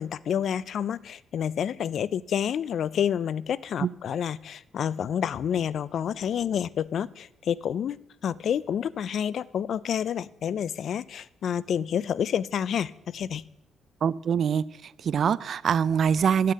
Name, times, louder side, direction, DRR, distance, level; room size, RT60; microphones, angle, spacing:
voice 1, 0.0-8.0 8.2-13.4, left 8 dB, 65° left, 20 dB, 0.4 m, -29 dB
voice 2, 14.0-16.5, right 7 dB, 55° right, 20 dB, 0.4 m, -24 dB
10.5 x 6.6 x 7.5 m, 0.86 s
cardioid pair, 90°, 0 cm